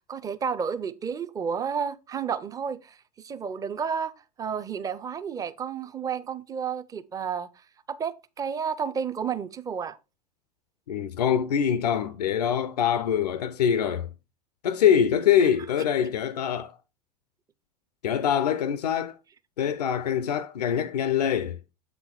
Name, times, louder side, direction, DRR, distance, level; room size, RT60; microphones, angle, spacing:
voice 1, 0.1-4.1 4.4-7.5 7.9-10.0, right 6 dB, 15° right, 0.5 m, -31 dB
voice 2, 10.9-14.1 14.6-16.8 18.0-19.2 19.6-21.6, left 8 dB, 75° left, 0.5 m, -24 dB
7.4 x 4.1 x 4.4 m
figure-of-eight pair, 85°, 21 cm